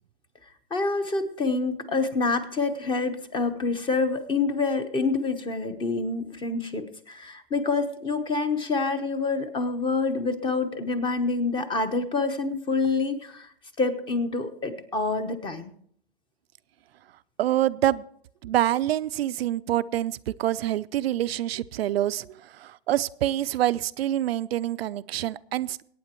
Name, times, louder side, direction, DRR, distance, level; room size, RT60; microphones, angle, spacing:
voice 1, 0.7-13.5 13.8-15.7, left 3 dB, 15° left, 11 dB, 1.0 m, -27 dB
voice 2, 17.4-18.0 18.4-22.3 22.6-25.8, right 13 dB, 70° right, 15 dB, 0.5 m, -26 dB
23.0 x 9.2 x 3.0 m, 0.64 s
hypercardioid pair, 135°, 31 cm